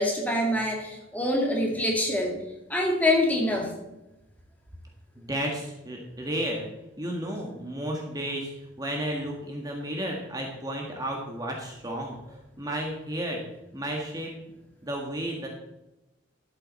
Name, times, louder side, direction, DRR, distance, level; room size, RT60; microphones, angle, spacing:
voice 1, 0.0-2.4 2.7-3.7, left 1 dB, 10° left, 0 dB, 2.1 m, -25 dB
voice 2, 5.1-6.7 7.0-13.4 13.7-14.3 14.8-15.5, right 1 dB, 20° right, 0 dB, 1.6 m, -33 dB
12.5 x 8.1 x 4.1 m, 0.94 s
head